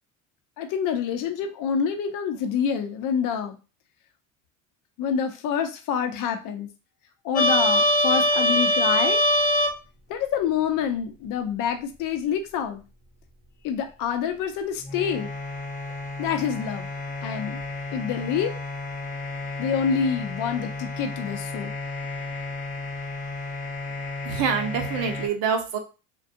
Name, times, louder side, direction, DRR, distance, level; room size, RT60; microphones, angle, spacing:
voice 1, 0.6-3.6 5.0-6.7 7.2-9.2 10.1-12.8 13.6-15.3 16.2-16.9 17.2-17.6 17.9-18.5 19.6-21.8, left 7 dB, 55° left, 6 dB, 0.6 m, -27 dB
sound 1, 7.3-9.7 14.8-25.3, left 1 dB, 20° left, 0.8 m, -27 dB
voice 2, 24.2-25.8, right 6 dB, 70° right, 5 dB, 0.8 m, -26 dB
2.5 x 2.2 x 2.6 m, 0.32 s
hypercardioid pair, 75°, 37 cm